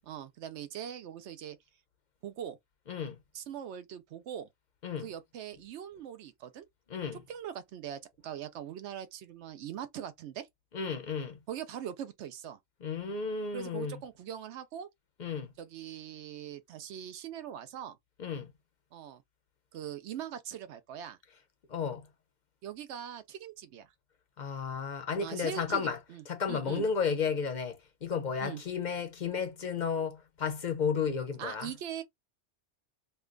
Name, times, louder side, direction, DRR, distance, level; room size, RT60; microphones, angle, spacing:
voice 1, 0.0-1.6 2.2-2.6 3.3-4.5 5.0-6.6 7.3-10.5 11.5-12.6 13.5-14.9 15.6-18.0 18.9-19.2 19.7-21.2 22.6-23.9 25.2-26.8 28.4-28.6 31.4-32.0, right 10 dB, 75° right, 0.8 m, -41 dB
voice 2, 6.9-7.2 10.7-11.4 12.8-14.0 15.2-15.5 18.2-18.5 21.7-22.1 24.4-26.0 26.3-31.7, left 6 dB, 50° left, 0.6 m, -33 dB
2.7 x 2.2 x 3.7 m
omnidirectional pair, 1.2 m